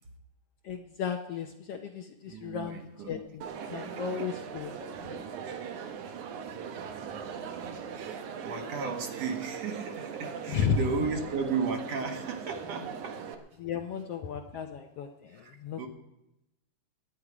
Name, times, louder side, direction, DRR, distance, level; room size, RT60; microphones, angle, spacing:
voice 1, 0.6-2.8 3.1-5.2 10.5-10.8 13.6-15.9, left 7 dB, 70° left, 5 dB, 1.5 m, -34 dB
voice 2, 2.3-3.2 3.6-4.4 7.9-13.2 15.3-15.9, right 5 dB, 65° right, 4 dB, 2.5 m, -35 dB
Crowd, 3.4-13.3, right 7 dB, 80° right, 2.5 m, -40 dB
21.0 x 9.7 x 4.9 m, 0.88 s
omnidirectional pair, 3.4 m